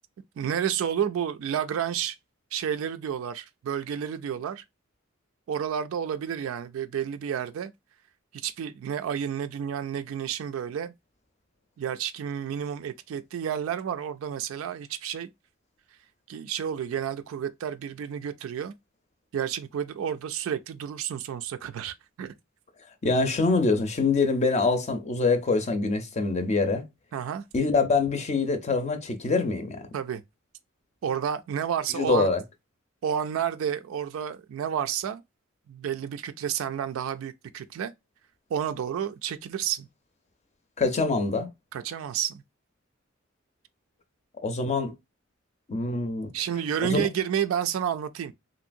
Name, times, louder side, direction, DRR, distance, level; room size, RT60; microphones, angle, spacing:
voice 1, 0.4-2.2 2.5-4.6 5.5-7.7 8.3-10.9 11.8-15.3 16.3-18.7 19.3-22.3 27.1-27.4 29.9-30.2 31.0-32.3 33.0-35.2 35.7-37.9 38.5-39.9 41.7-42.4 46.3-48.3, right 8 dB, 75° right, 0.3 m, -30 dB
voice 2, 23.0-26.8 27.5-29.9 31.9-32.4 40.8-41.5 44.4-44.9 45.7-46.3 46.8-47.1, left 3 dB, 35° left, 0.5 m, -25 dB
3.0 x 2.7 x 2.5 m
head